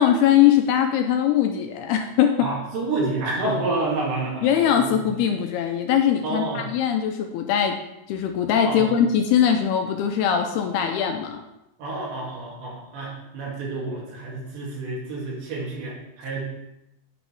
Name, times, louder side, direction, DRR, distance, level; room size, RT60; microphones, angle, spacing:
voice 1, 0.0-2.4 4.4-7.8 8.1-11.4, left 9 dB, 80° left, 4 dB, 2.5 m, -21 dB
voice 2, 2.4-5.2 6.2-6.7 8.6-8.9 11.8-16.5, right 2 dB, 80° right, -5 dB, 4.8 m, -29 dB
9.1 x 8.8 x 3.5 m, 0.89 s
omnidirectional pair, 4.9 m